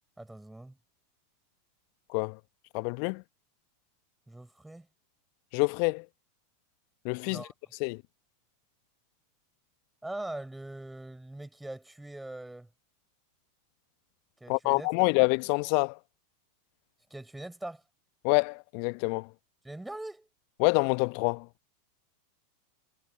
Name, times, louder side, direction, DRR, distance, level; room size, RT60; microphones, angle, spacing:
voice 1, 0.2-0.8 4.3-4.9 7.3-7.5 10.0-12.7 14.4-15.1 17.1-17.8 19.6-20.3, right 1 dB, 5° right, 6.2 m, -42 dB
voice 2, 2.7-3.2 5.5-6.0 7.0-7.4 7.8-8.0 14.5-16.0 18.2-19.3 20.6-21.5, left 40 dB or more, 50° left, 1.1 m, -26 dB
figure-of-eight pair, 85°, 0 cm